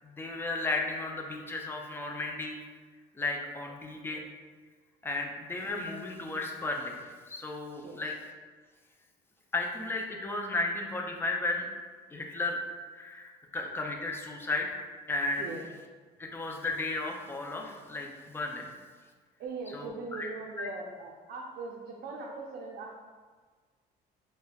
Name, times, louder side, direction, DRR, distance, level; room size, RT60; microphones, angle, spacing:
voice 1, 0.0-2.6 3.2-4.2 5.0-8.1 9.5-11.7 12.1-12.6 12.9-14.8 15.1-15.5 16.2-18.7 19.7-20.3 20.6-20.7, left 2 dB, 15° left, 1 dB, 0.4 m, -34 dB
voice 2, 19.4-23.0, right 3 dB, 70° right, -2 dB, 0.5 m, -40 dB
4.8 x 2.1 x 2.3 m, 1.5 s
cardioid pair, 110°, 17 cm